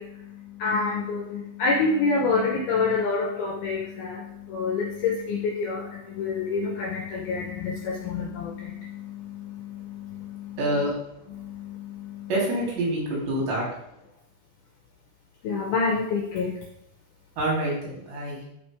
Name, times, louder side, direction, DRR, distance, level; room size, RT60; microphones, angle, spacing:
voice 1, 0.0-10.6 11.3-12.3 15.4-16.6, left 4 dB, 75° left, 0 dB, 2.4 m, -28 dB
voice 2, 10.6-10.9 12.3-13.6 17.4-18.4, right 1 dB, 65° right, -4 dB, 5.5 m, -26 dB
14.0 x 5.5 x 3.6 m, 0.78 s
omnidirectional pair, 5.6 m